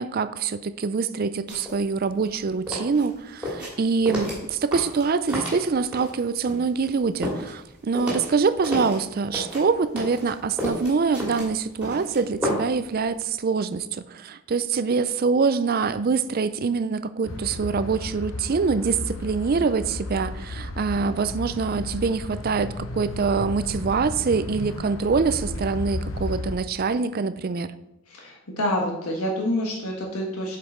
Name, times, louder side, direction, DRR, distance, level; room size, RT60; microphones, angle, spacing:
voice 1, 0.0-27.7, right 5 dB, 45° right, 13 dB, 0.4 m, -25 dB
sound 1, 1.5-1.8 2.1-6.2 6.5-9.0 9.3-12.9 13.1-13.2, left 1 dB, 5° right, 2.3 m, -31 dB
sound 2, 17.2-26.6, left 2 dB, 65° left, 0.7 m, -34 dB
voice 2, 28.1-30.6, left 1 dB, 80° left, -1 dB, 1.3 m, -27 dB
7.6 x 5.3 x 4.3 m, 0.87 s
head